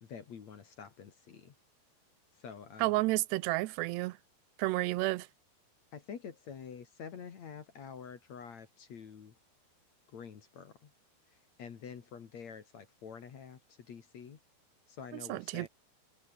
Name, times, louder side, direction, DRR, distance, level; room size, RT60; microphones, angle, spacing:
voice 1, 0.0-1.5 2.4-2.9 5.9-9.3 10.1-10.9 11.6-13.6 13.9-14.4 14.9-15.7, left 7 dB, 50° left, 2.8 m, -47 dB
voice 2, 2.8-4.2 4.6-5.3 15.1-15.7, right 20 dB, 85° right, 2.8 m, -31 dB
omnidirectional pair, 4.9 m